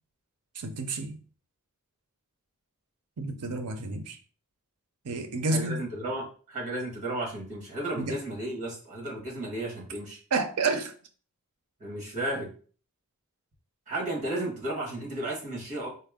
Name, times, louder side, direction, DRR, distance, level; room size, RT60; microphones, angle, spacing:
voice 1, 0.6-1.2 3.2-4.2 5.0-5.8 8.0-8.2 10.3-10.9, right 3 dB, 85° right, 0.6 m, -30 dB
voice 2, 5.5-10.2 11.8-12.5 13.9-15.9, right 1 dB, 35° right, 1.4 m, -33 dB
4.1 x 2.1 x 3.6 m
head